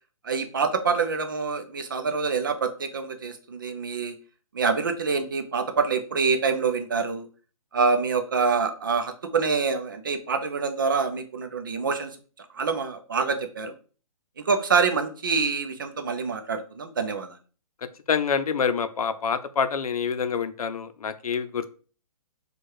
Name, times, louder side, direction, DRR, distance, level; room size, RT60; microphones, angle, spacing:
voice 1, 0.2-4.1 4.5-7.3 7.7-12.1 12.5-13.7 14.4-17.4, right 5 dB, 35° right, 7 dB, 0.5 m, -26 dB
voice 2, 18.1-21.7, left 6 dB, 85° left, 11 dB, 0.6 m, -26 dB
4.5 x 2.3 x 4.7 m, 0.38 s
hypercardioid pair, 175°, 18 cm